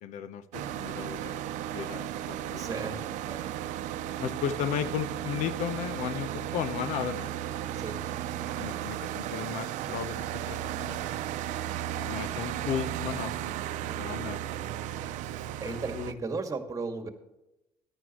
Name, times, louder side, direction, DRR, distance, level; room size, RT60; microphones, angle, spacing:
voice 1, 0.0-2.8 4.2-7.3 7.7-7.9 8.4-11.0 12.0-13.6 14.0-14.4 15.6-16.1, left 9 dB, 75° left, 13 dB, 0.9 m, -35 dB
sound 1, 0.5-16.1, right 11 dB, 80° right, 0.7 m, -35 dB
voice 2, 2.6-3.5 7.7-8.0 15.0-17.1, right 4 dB, 25° right, 6 dB, 2.1 m, -36 dB
14.0 x 11.0 x 3.1 m, 0.95 s
supercardioid pair, 80°, 13 cm